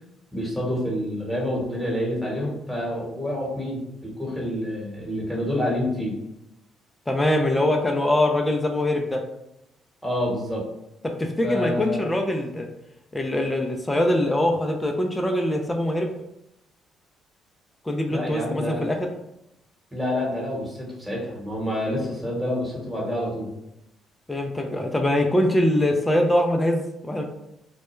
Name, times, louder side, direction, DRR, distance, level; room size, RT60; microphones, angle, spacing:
voice 1, 0.3-6.2 10.0-10.6 11.4-12.0 18.1-18.8 19.9-23.5, left 1 dB, ahead, -4 dB, 1.1 m, -28 dB
voice 2, 7.1-9.2 11.0-12.7 13.1-16.1 17.9-19.1 24.3-27.2, left 1 dB, 15° left, 3 dB, 0.4 m, -23 dB
2.2 x 2.1 x 3.0 m, 0.86 s
supercardioid pair, 60°, 0 cm